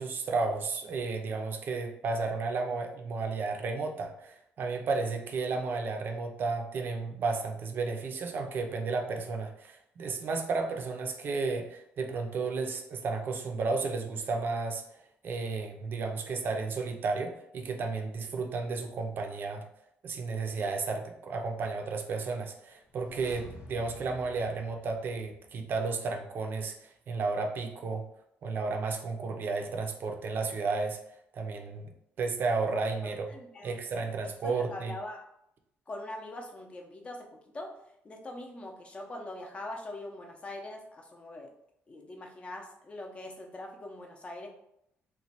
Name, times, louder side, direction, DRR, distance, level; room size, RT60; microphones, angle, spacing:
voice 1, 0.0-14.8 15.2-19.6 20.0-28.0 28.4-31.0 31.3-31.9 32.2-33.3 33.6-34.9, right 4 dB, 50° right, 4 dB, 0.5 m, -33 dB
sound 1, 22.8-25.8 26.0-26.1, left 1 dB, 80° left, 0.9 m, -50 dB
voice 2, 33.0-34.1 34.4-35.3 35.9-37.7 38.0-41.5 41.9-44.5, left 1 dB, 25° left, 2 dB, 0.6 m, -42 dB
3.0 x 2.2 x 4.1 m, 0.77 s
cardioid pair, 150°, 5 cm